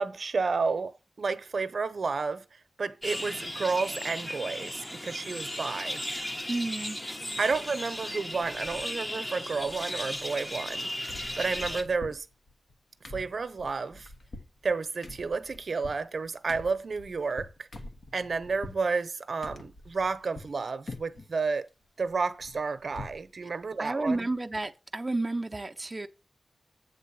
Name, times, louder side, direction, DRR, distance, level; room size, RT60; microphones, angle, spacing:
voice 1, 0.0-6.0 7.4-12.3 13.1-14.1 14.6-17.7 18.1-21.7 22.0-24.3, right 4 dB, 65° right, 0.7 m, -31 dB
sound 1, 3.0-11.8, left 1 dB, 20° left, 1.0 m, -36 dB
sound 2, 6.1-6.5 6.9-7.7 8.0-8.1 8.3-9.2 9.4-10.8 11.1-18.8 19.4-20.6 20.9-21.3 21.7-23.3 23.6-23.7 24.0-24.2, left 2 dB, 60° left, 1.2 m, -46 dB
voice 2, 6.5-7.0 23.8-26.1, right 2 dB, 25° right, 0.5 m, -31 dB
8.2 x 3.9 x 6.9 m
wide cardioid pair, 100°, 0 cm